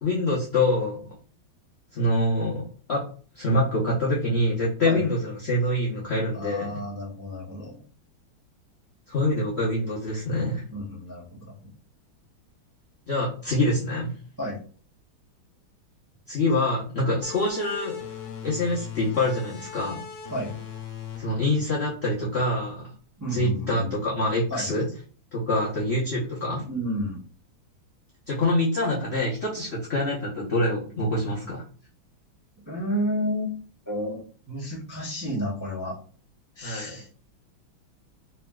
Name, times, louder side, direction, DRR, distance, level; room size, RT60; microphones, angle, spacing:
voice 1, 0.0-1.0 1.9-3.0 3.3-6.7 9.1-10.6 13.1-14.2 16.3-17.9 18.4-20.0 21.2-22.9 23.3-24.9 25.3-26.6 28.3-31.6 36.6-37.0, left 1 dB, 65° left, -5 dB, 0.6 m, -25 dB
voice 2, 6.3-7.8 10.7-11.7 14.4-14.6 20.3-20.5 23.2-23.9 24.5-24.7 26.7-27.2 32.7-33.6 33.9-36.0 36.5-37.1, equal, 20° right, -7 dB, 0.5 m, -31 dB
sound 1, 17.2-22.5, left 9 dB, 85° left, 1.5 m, -39 dB
3.3 x 2.9 x 2.2 m, 0.41 s
omnidirectional pair, 2.2 m